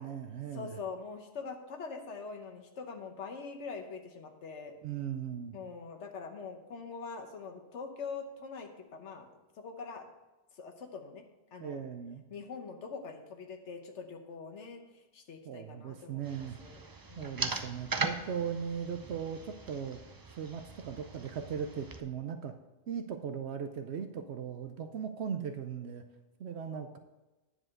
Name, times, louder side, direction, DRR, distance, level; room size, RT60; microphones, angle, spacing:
voice 1, 0.0-0.8 4.8-5.6 11.6-12.2 15.5-16.6 17.2-20.0 20.3-22.5 22.9-26.0 26.4-27.0, right 7 dB, 70° right, 7 dB, 0.9 m, -38 dB
voice 2, 0.5-4.7 5.5-10.1 10.5-11.2 11.5-11.8 12.3-16.8 17.1-17.6 26.7-27.0, left 5 dB, 85° left, 4 dB, 1.3 m, -44 dB
sound 1, 16.2-22.0, right 3 dB, 30° right, 0.4 m, -40 dB
9.8 x 5.0 x 6.4 m, 1.1 s
omnidirectional pair, 1.2 m